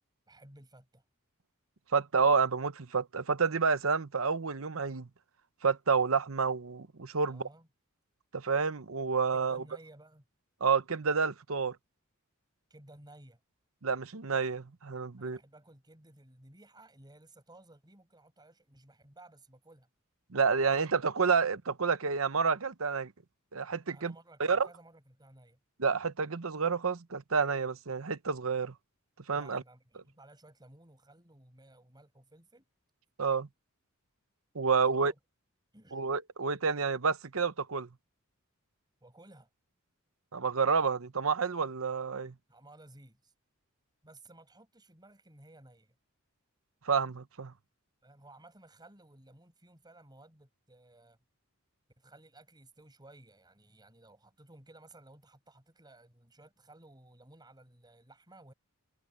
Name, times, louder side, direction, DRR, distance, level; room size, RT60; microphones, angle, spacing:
voice 1, 0.3-1.0 7.2-7.7 9.3-10.2 12.7-13.4 15.2-19.9 20.5-20.8 21.3-21.5 23.9-25.6 29.3-32.6 34.7-35.1 35.7-36.0 39.0-39.5 42.5-43.3 44.0-45.9 48.0-51.2 52.0-58.5, right 1 dB, 20° right, 6.5 m, -57 dB
voice 2, 1.9-5.1 5.6-7.5 8.3-9.6 10.6-11.8 13.8-15.4 20.3-23.1 23.5-24.1 24.4-24.7 25.8-28.7 29.3-29.6 33.2-33.5 34.5-35.1 35.9-37.9 40.3-42.3 46.8-47.5, right 5 dB, 70° right, 0.9 m, -29 dB
head